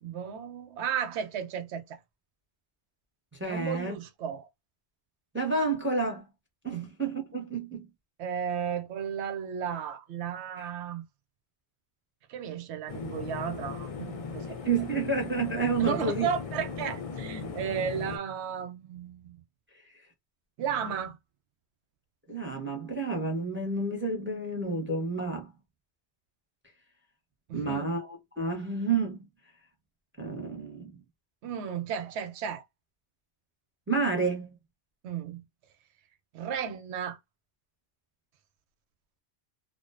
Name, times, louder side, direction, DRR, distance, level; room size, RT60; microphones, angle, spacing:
voice 1, 0.0-2.0 3.5-4.5 6.7-6.9 8.2-11.0 12.3-14.6 15.8-19.4 20.6-21.2 27.5-27.9 31.4-32.6 35.0-35.4 36.3-37.2, right 8 dB, 85° right, 0.9 m, -34 dB
voice 2, 3.4-3.9 5.3-6.2 6.6-7.8 10.6-10.7 14.6-16.3 19.8-19.9 22.3-25.5 27.5-29.3 30.2-31.0 33.9-34.5, right 3 dB, 15° right, 0.6 m, -30 dB
sound 1, 12.9-18.2, left 5 dB, 50° left, 0.4 m, -38 dB
2.4 x 2.2 x 2.3 m
omnidirectional pair, 1.1 m